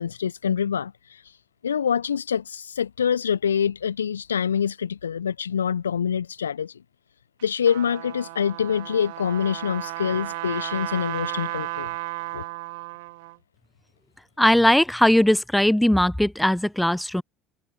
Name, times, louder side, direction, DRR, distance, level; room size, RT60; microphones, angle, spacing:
voice 1, 0.0-1.4 1.6-6.8 7.4-11.9 12.3-12.4, left 7 dB, 80° left, 1.0 m, -25 dB
Trumpet, 7.4-13.4, right 25 dB, 65° right, 4.3 m, -34 dB
voice 2, 14.4-17.2, left 1 dB, 5° left, 0.6 m, -19 dB
figure-of-eight pair, 60°, 0 cm